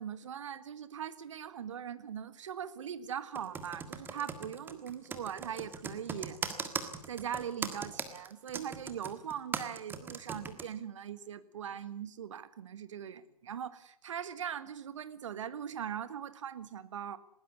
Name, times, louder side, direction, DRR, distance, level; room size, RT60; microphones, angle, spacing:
voice 1, 0.0-6.4 7.1-17.2, right 8 dB, 55° right, 14 dB, 1.7 m, -40 dB
Computer keyboard, 3.3-10.6, right 6 dB, 10° right, 1.6 m, -39 dB
20.0 x 18.5 x 8.3 m, 0.67 s
figure-of-eight pair, 125°, 20 cm